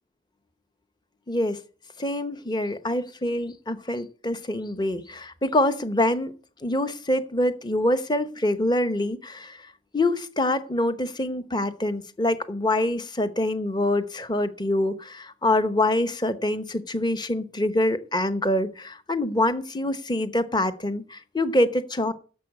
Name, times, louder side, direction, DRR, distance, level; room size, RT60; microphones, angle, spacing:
voice 1, 1.3-1.6 2.0-6.3 6.6-9.6 9.9-22.1, left 1 dB, 20° left, 12 dB, 0.9 m, -25 dB
11.0 x 7.3 x 8.3 m, 0.39 s
head